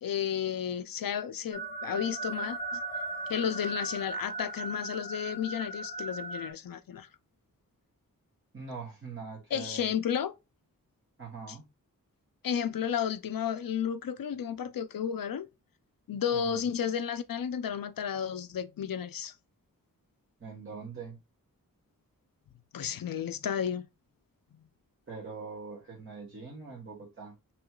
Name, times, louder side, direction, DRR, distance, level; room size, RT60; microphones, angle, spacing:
voice 1, 0.0-2.8 3.3-7.1 9.5-10.3 12.4-15.5 16.1-19.3 22.7-23.9, left 8 dB, 85° left, 0.6 m, -32 dB
sound 1, 1.5-6.5, right 2 dB, 20° left, 1.0 m, -37 dB
voice 2, 8.5-9.9 11.2-11.7 16.3-16.7 20.4-21.2 25.1-27.3, right 4 dB, 40° right, 2.0 m, -43 dB
5.9 x 3.1 x 2.4 m
wide cardioid pair, 100°, 34 cm